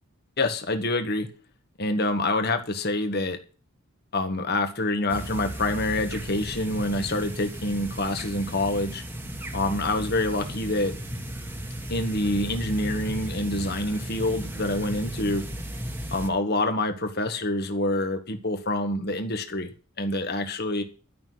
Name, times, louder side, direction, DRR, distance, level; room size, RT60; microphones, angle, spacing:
voice 1, 0.4-1.3 1.8-3.4 4.1-9.0 9.5-10.9 11.9-15.5 16.1-20.8, left 2 dB, 45° left, 7 dB, 1.8 m, -26 dB
sound 1, 5.1-16.3, equal, 10° right, 1.4 m, -35 dB
12.5 x 6.2 x 9.4 m, 0.36 s
head